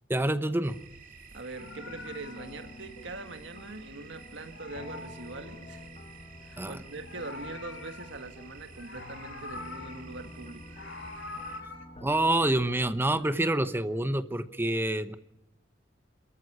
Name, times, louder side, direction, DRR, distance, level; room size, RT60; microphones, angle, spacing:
voice 1, 0.1-0.8 6.6-6.8 12.0-15.2, right 1 dB, 10° right, 12 dB, 0.8 m, -27 dB
sound 1, 0.6-11.6, right 4 dB, 45° right, 2.4 m, -51 dB
Meow, 1.3-4.0 4.3-6.0 6.8-8.4 8.7-10.2 10.5-11.9, left 3 dB, 75° left, 5.2 m, -45 dB
voice 2, 1.3-5.9 6.4-10.6, right 3 dB, 70° right, 8 dB, 1.6 m, -42 dB
sound 2, 1.6-14.2, left 2 dB, 30° left, 1.1 m, -49 dB
27.0 x 14.5 x 9.9 m, 0.90 s
head